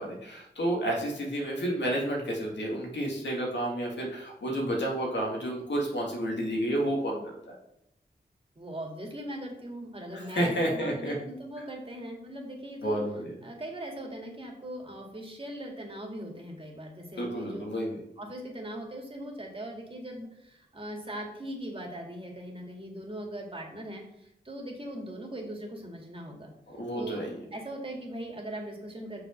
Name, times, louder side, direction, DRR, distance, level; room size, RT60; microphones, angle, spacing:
voice 1, 0.0-7.6 10.1-11.1 12.8-13.3 17.2-18.0 26.7-27.3, right 1 dB, 85° left, -1 dB, 2.1 m, -30 dB
voice 2, 8.6-13.0 13.4-17.7 18.2-26.5 26.9-29.2, right 1 dB, 30° right, 1 dB, 2.1 m, -40 dB
6.1 x 4.9 x 5.8 m, 0.80 s
cardioid pair, 60°, 18 cm